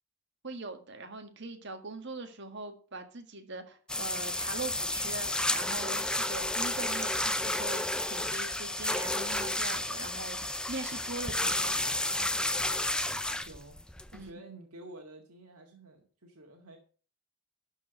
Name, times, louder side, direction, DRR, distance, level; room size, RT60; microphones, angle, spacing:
voice 1, 0.4-11.9 14.1-14.4, right 3 dB, 55° right, 6 dB, 1.7 m, -42 dB
sound 1, 3.9-14.3, left 1 dB, 5° left, 0.4 m, -31 dB
sound 2, 4.4-13.2, left 1 dB, 55° left, 1.5 m, -54 dB
voice 2, 12.6-13.8 14.1-16.8, right 2 dB, 85° right, 2 dB, 1.9 m, -50 dB
12.0 x 4.7 x 6.8 m, 0.40 s
head